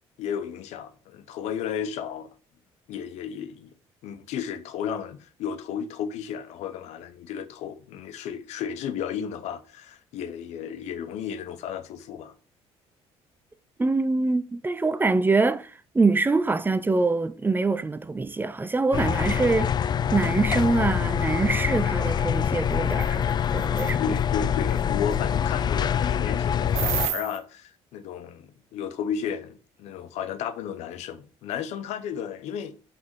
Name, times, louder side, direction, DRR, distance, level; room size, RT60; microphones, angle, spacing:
voice 1, 0.2-2.3 2.9-3.7 4.0-12.3 24.0-32.7, left 8 dB, 80° left, 1.0 m, -33 dB
voice 2, 13.8-19.7 20.1-24.2, right 3 dB, 15° right, 0.6 m, -24 dB
sound 1, 18.9-27.1, left 8 dB, 40° left, 0.4 m, -25 dB
sound 2, 22.9-23.1 23.6-23.9 26.8-27.4, right 11 dB, 70° right, 0.9 m, -29 dB
5.9 x 5.2 x 6.0 m
cardioid pair, 95°, 11 cm